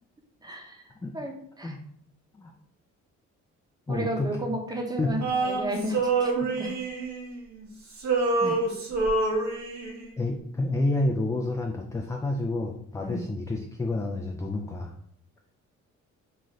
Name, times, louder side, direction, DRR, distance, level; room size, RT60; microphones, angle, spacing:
voice 1, 0.4-1.8 3.9-6.8 8.4-8.6 13.0-13.2, equal, 15° right, 1 dB, 0.8 m, -33 dB
voice 2, 3.9-4.6 5.0-5.2 8.4-8.6 10.2-14.9, left 2 dB, 10° left, 1 dB, 0.3 m, -29 dB
Male singing, 5.2-7.7 7.9-10.1, right 3 dB, 65° right, 1.0 m, -27 dB
3.1 x 2.4 x 3.9 m, 0.67 s
cardioid pair, 90°, 30 cm